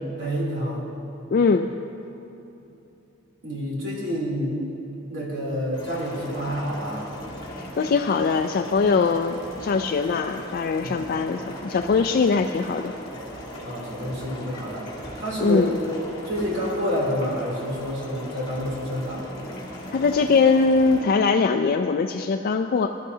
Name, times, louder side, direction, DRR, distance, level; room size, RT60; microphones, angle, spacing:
voice 1, 0.2-0.8 3.4-4.6 5.1-7.1 10.8-11.0 13.6-15.7 16.2-19.3, equal, 60° right, -5 dB, 3.3 m, -28 dB
voice 2, 1.3-1.7 7.5-12.9 15.4-15.8 19.9-23.0, left 4 dB, 45° left, 6 dB, 0.3 m, -22 dB
sound 1, 5.7-21.0, equal, 25° left, 2.9 m, -38 dB
21.5 x 12.5 x 2.8 m, 2.9 s
head